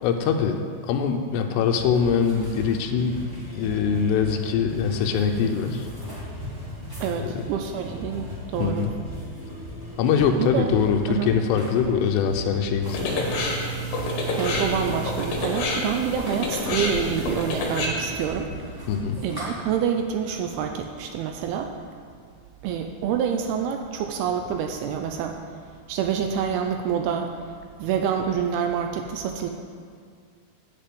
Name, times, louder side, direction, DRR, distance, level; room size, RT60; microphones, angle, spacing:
voice 1, 0.0-0.6 0.9-3.2 3.5-5.9 7.2-7.4 8.6-8.9 10.0-13.3 18.9-19.2, left 6 dB, 85° left, 4 dB, 2.8 m, -23 dB
sound 1, 1.7-19.5, left 1 dB, 15° right, 0.7 m, -38 dB
sound 2, 2.5-7.5 7.8-8.8 9.1-9.2, equal, 35° right, 2.0 m, -39 dB
voice 2, 7.0-8.3 8.5-8.9 10.3-10.7 11.1-11.3 14.4-18.5 19.2-21.7 22.6-25.4 25.9-27.3 27.8-29.5, right 8 dB, 80° right, 4 dB, 2.4 m, -27 dB
sound 3, 12.8-17.9, left 1 dB, 65° left, 3.0 m, -28 dB
8.2 x 6.8 x 7.7 m, 2.1 s
omnidirectional pair, 4.7 m